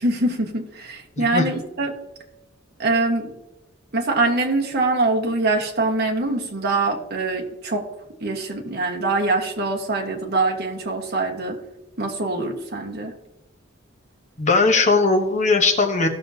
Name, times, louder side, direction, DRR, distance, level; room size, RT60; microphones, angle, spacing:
voice 1, 0.0-1.9 2.8-3.3 3.9-7.8 8.2-11.6 12.0-13.1, right 2 dB, 50° right, 1 dB, 1.4 m, -23 dB
voice 2, 1.2-1.5 14.4-16.1, left 3 dB, 35° left, 4 dB, 1.0 m, -19 dB
16.0 x 6.3 x 2.8 m, 0.97 s
head